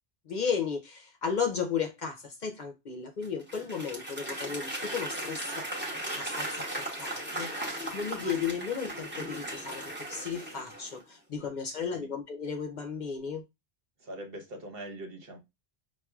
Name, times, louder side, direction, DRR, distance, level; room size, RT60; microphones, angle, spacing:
voice 1, 0.3-5.7 6.1-13.4, left 6 dB, 55° left, 0.6 m, -34 dB
Applause / Crowd, 3.2-11.0, right 1 dB, 10° right, 1.0 m, -37 dB
voice 2, 11.4-12.1 14.0-15.4, right 1 dB, 65° right, 1.2 m, -43 dB
5.7 x 2.4 x 2.3 m
omnidirectional pair, 1.1 m